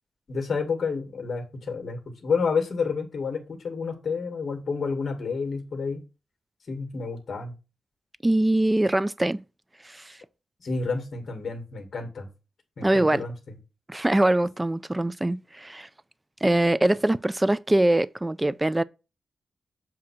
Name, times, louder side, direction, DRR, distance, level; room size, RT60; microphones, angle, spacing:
voice 1, 0.3-6.0 6.7-7.5 10.6-12.3 12.8-13.6, left 5 dB, 55° left, 1.9 m, -30 dB
voice 2, 8.2-9.4 9.8-10.2 12.8-13.2 13.9-15.9 16.4-18.8, right 1 dB, 15° right, 0.3 m, -23 dB
7.4 x 2.8 x 5.9 m
wide cardioid pair, 100°, 0 cm